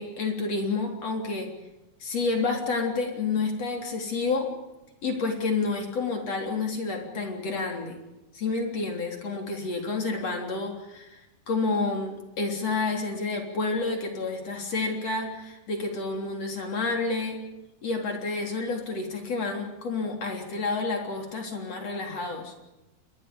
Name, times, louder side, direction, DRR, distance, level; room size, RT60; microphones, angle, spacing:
voice 1, 0.0-1.5 2.0-4.5 5.0-8.0 8.3-11.2 11.5-17.4 17.8-22.5, left 3 dB, 40° left, 2 dB, 4.5 m, -29 dB
28.5 x 23.0 x 5.3 m, 0.99 s
omnidirectional pair, 4.4 m